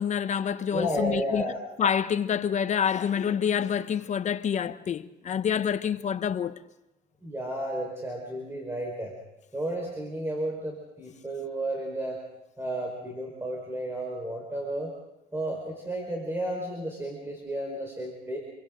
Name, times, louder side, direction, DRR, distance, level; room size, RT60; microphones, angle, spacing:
voice 1, 0.0-1.5 1.8-6.5, left 8 dB, 45° left, 1.0 m, -27 dB
voice 2, 0.7-1.6 7.2-9.1 9.5-12.2 12.6-14.9 15.3-18.4, right 1 dB, 15° right, 4.6 m, -32 dB
28.0 x 24.0 x 3.9 m
cardioid pair, 110°, 17 cm